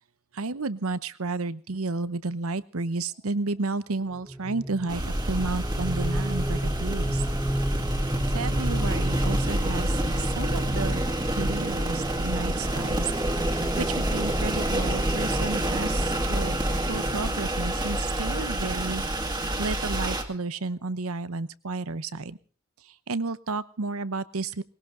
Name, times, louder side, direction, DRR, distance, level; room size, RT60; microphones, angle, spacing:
voice 1, 0.3-7.2 8.3-11.0 11.3-13.4 13.8-22.4 22.8-24.6, right 3 dB, 70° right, 16 dB, 0.9 m, -32 dB
sound 1, 4.1-19.0, right 1 dB, ahead, 1.3 m, -34 dB
sound 2, 4.9-20.2, right 1 dB, 20° right, 2.1 m, -27 dB
20.5 x 18.0 x 3.9 m, 0.38 s
head